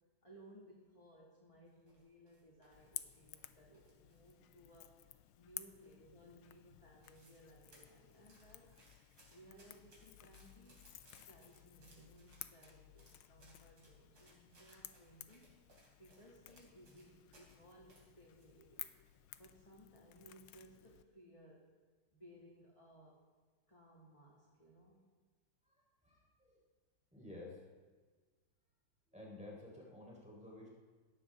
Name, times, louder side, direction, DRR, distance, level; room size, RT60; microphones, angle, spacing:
voice 1, 0.2-4.9 5.4-8.7 9.3-10.9 11.2-18.9 19.4-21.7 22.1-23.2 23.7-25.0, right 1 dB, 15° left, -4 dB, 2.1 m, -61 dB
sound 1, 1.7-4.4 4.7-5.5 5.8-6.2 6.5-6.6 6.8-7.4 7.7-17.6 17.9-19.1 19.5-19.6 20.2-20.5 20.9-21.1, right 2 dB, 65° right, 4.6 m, -68 dB
Crackle / Crack, 2.7-21.0, left 13 dB, 85° left, 1.5 m, -55 dB
voice 2, 26.0-26.6 27.1-27.6 29.1-30.7, left 2 dB, 5° right, -4 dB, 3.9 m, -52 dB
17.0 x 14.0 x 3.6 m, 1.4 s
omnidirectional pair, 2.2 m